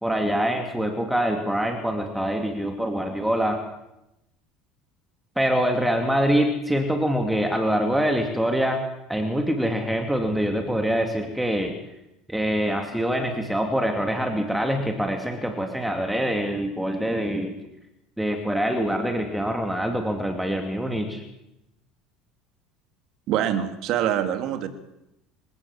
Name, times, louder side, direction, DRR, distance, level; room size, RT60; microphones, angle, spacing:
voice 1, 0.0-3.6 5.4-8.8 9.1-11.7 12.3-17.6 18.2-21.2, equal, 5° right, 4 dB, 2.5 m, -24 dB
voice 2, 23.3-24.7, right 10 dB, 55° right, 8 dB, 2.8 m, -24 dB
27.0 x 16.5 x 7.4 m, 0.87 s
cardioid pair, 140°, 0 cm